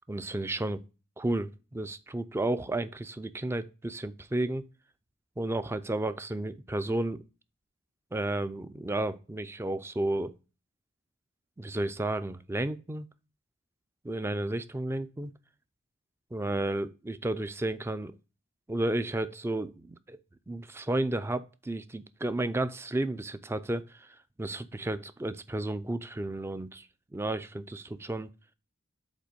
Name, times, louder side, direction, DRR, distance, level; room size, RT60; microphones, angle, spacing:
voice 1, 0.1-0.8 1.2-4.6 5.4-7.2 8.1-10.4 11.6-13.1 14.0-15.3 16.3-18.1 18.7-20.2 20.5-24.1 24.4-26.9 27.1-28.3, right 1 dB, 10° right, 0.3 m, -32 dB
5.1 x 4.1 x 5.1 m
head